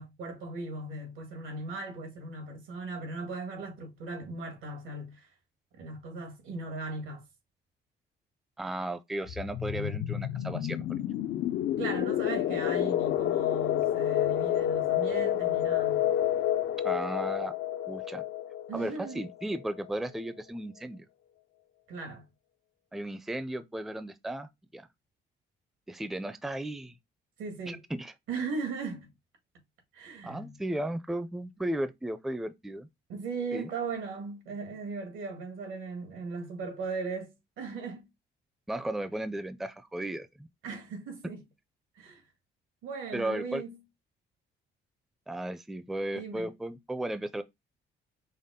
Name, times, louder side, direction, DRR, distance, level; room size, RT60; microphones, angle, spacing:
voice 1, 0.0-5.3 5.7-7.2 11.8-16.1 18.7-19.2 21.9-22.3 27.4-27.8 28.3-29.1 29.9-30.6 33.1-38.1 40.6-41.4 42.0-42.2 42.8-43.8 46.1-46.5, right 3 dB, 85° right, 1.8 m, -38 dB
voice 2, 8.6-11.0 16.8-17.5 17.9-18.2 18.7-21.1 22.9-24.9 25.9-27.0 27.7-28.1 30.2-32.9 33.5-33.7 38.7-40.5 43.1-43.6 45.3-47.4, right 1 dB, ahead, 0.4 m, -35 dB
sound 1, 9.3-19.8, left 11 dB, 70° left, 0.4 m, -29 dB
5.5 x 2.1 x 3.6 m
cardioid pair, 90°, 20 cm